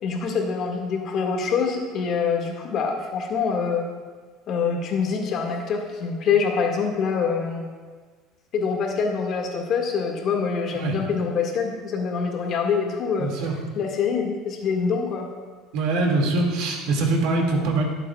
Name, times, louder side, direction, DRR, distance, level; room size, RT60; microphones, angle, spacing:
voice 1, 0.0-3.9 4.5-7.7 8.5-13.3 13.8-15.3, left 5 dB, 50° left, 0 dB, 2.1 m, -25 dB
voice 2, 13.2-13.6 15.7-17.8, right 2 dB, 75° right, 0 dB, 2.4 m, -23 dB
20.0 x 8.2 x 2.5 m, 1.4 s
supercardioid pair, 120°, 0 cm